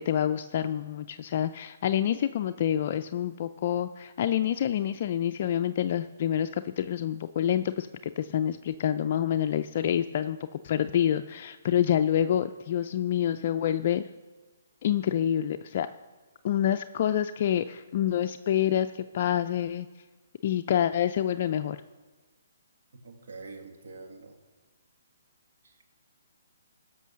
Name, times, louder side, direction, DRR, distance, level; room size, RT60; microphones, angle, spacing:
voice 1, 0.0-7.9 8.2-10.4 10.6-14.0 14.8-15.9 16.4-19.9 20.4-21.8, left 10 dB, 45° left, 9 dB, 0.4 m, -27 dB
voice 2, 23.0-24.4 25.6-26.0, right 3 dB, 65° right, 3 dB, 1.9 m, -47 dB
16.0 x 6.1 x 6.3 m, 1.3 s
hypercardioid pair, 140°, 0 cm